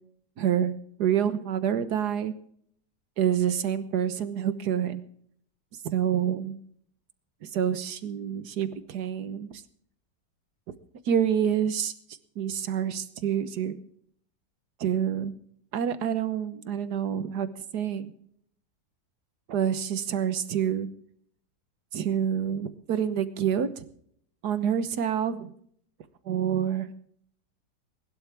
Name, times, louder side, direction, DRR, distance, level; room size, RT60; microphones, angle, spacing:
voice 1, 0.4-0.7 1.0-2.3 3.2-5.0 5.9-6.6 7.4-9.6 11.1-11.9 12.4-13.8 14.8-15.4 15.7-17.5 17.7-18.1 19.5-20.9 21.9-23.9 24.4-25.5 26.2-26.9, right 9 dB, 70° right, 13 dB, 1.6 m, -27 dB
21.5 x 12.0 x 3.4 m, 0.63 s
omnidirectional pair, 1.8 m